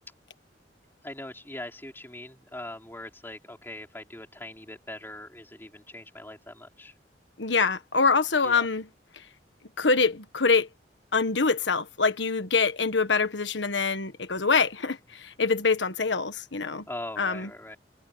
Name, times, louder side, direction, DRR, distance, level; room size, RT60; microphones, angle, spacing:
voice 1, 1.0-6.9 8.4-8.7 16.9-17.8, left 1 dB, 15° left, 3.5 m, -41 dB
voice 2, 7.4-8.9 9.8-10.7 11.1-16.9 17.2-17.5, left 4 dB, 85° left, 1.5 m, -25 dB
head